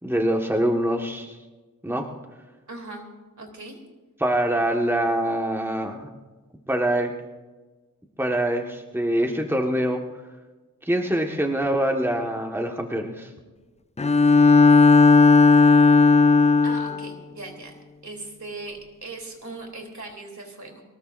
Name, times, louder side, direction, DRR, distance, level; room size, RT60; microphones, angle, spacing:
voice 1, 0.0-1.4 1.8-2.1 4.2-6.1 6.7-7.1 8.2-10.0 10.8-13.3, right 1 dB, 5° right, 2 dB, 1.5 m, -24 dB
voice 2, 2.7-3.1 3.4-3.8 16.6-17.7 18.0-20.8, right 2 dB, 65° right, 1 dB, 3.2 m, -39 dB
Bowed string instrument, 14.0-17.1, left 4 dB, 20° left, 0.4 m, -15 dB
22.0 x 19.5 x 2.6 m, 1.2 s
wide cardioid pair, 60°, 31 cm